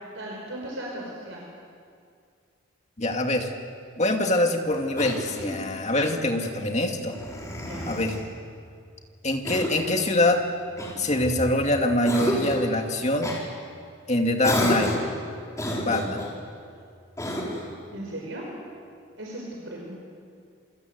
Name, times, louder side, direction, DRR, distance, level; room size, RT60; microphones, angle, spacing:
voice 1, 0.1-1.4 7.6-7.9 17.9-18.5 19.2-20.0, right 1 dB, 65° right, -2 dB, 5.1 m, -37 dB
voice 2, 3.0-3.5 4.0-7.2 7.9-8.2 9.2-10.4 11.0-13.3 14.1-14.9 15.7-16.3, left 1 dB, 35° left, 3 dB, 2.4 m, -24 dB
Cough, 5.0-5.7 7.1-8.2 9.4-10.0 10.8-11.6 12.0-12.7 13.2-13.4 14.4-15.1 15.5-16.3 17.2-17.7, left 1 dB, 15° left, 4.5 m, -30 dB
28.0 x 25.0 x 8.1 m, 2.3 s
head